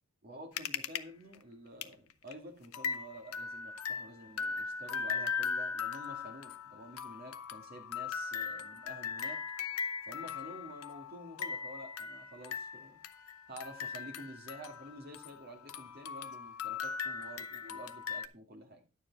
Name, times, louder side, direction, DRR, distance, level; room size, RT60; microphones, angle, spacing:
voice 1, 0.2-9.4 10.1-13.0 13.5-18.8, equal, 45° right, 2 dB, 2.3 m, -50 dB
sound 1, 0.6-1.0 1.3-1.4 1.8-1.9 2.3-2.4 2.7-15.4 15.7-18.3, left 6 dB, 75° left, 0.6 m, -39 dB
10.0 x 7.1 x 4.1 m, 0.29 s
head